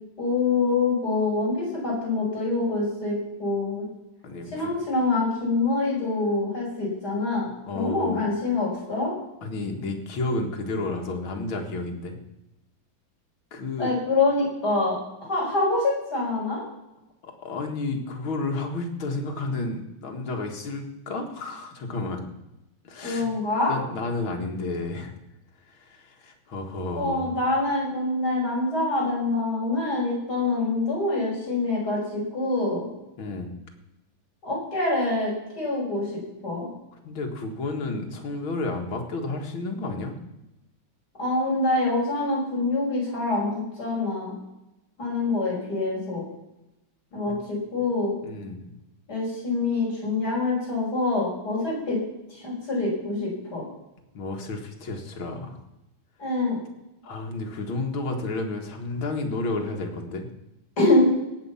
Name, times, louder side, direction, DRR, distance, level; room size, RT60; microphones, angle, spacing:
voice 1, 0.2-3.8 4.5-7.5 7.7-9.1 13.8-16.6 23.0-23.7 26.9-32.8 34.4-36.7 41.2-44.3 45.0-46.2 47.1-48.2 49.1-52.0 52.3-53.6 56.2-56.6 60.8-61.1, left 2 dB, 50° left, -5 dB, 6.4 m, -25 dB
voice 2, 4.2-4.7 7.7-8.2 9.4-12.2 13.5-13.9 17.2-22.2 22.8-23.3 23.7-25.1 25.7-27.3 33.2-33.5 37.0-40.1 48.2-48.6 54.1-55.6 57.0-60.3, left 2 dB, 90° left, 3 dB, 2.7 m, -31 dB
18.0 x 8.0 x 5.7 m, 0.91 s
omnidirectional pair, 2.2 m